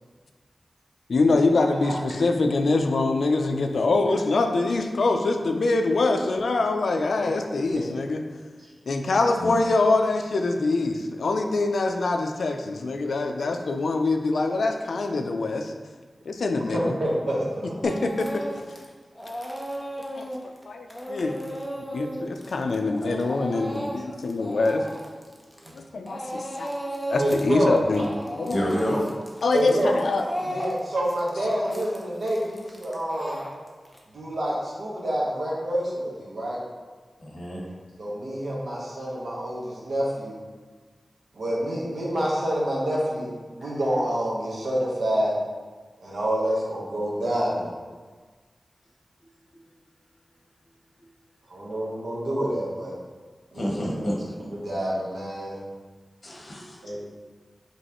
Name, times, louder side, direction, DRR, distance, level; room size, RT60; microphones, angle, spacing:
voice 1, 1.1-8.2 8.9-15.7 16.3-17.0 17.8-18.4 20.1-20.3 20.7-21.4 21.8-24.8 25.7-26.7 27.1-28.1 28.3-28.6 28.9-29.0 29.4-30.2, left 3 dB, 85° left, 5 dB, 0.3 m, -24 dB
voice 2, 16.6-17.6 25.6-25.7 27.1-27.8 29.5-29.9 30.4-33.4 34.1-36.6 38.0-40.3 41.3-45.3 46.0-47.7 51.5-52.9 53.5-54.1 54.4-55.6 56.8-57.0, right 1 dB, 85° right, -5 dB, 1.1 m, -27 dB
Speech / Crying sobbing, 17.8-18.9 19.2-25.8 26.1-27.5 27.8-34.0, equal, ahead, 0.7 m, -35 dB
voice 3, 28.5-29.1 37.2-37.6 43.6-43.7 53.5-54.2 56.2-57.0, equal, 55° left, -3 dB, 1.0 m, -29 dB
5.2 x 3.2 x 2.9 m, 1.4 s
wide cardioid pair, 85°, 0 cm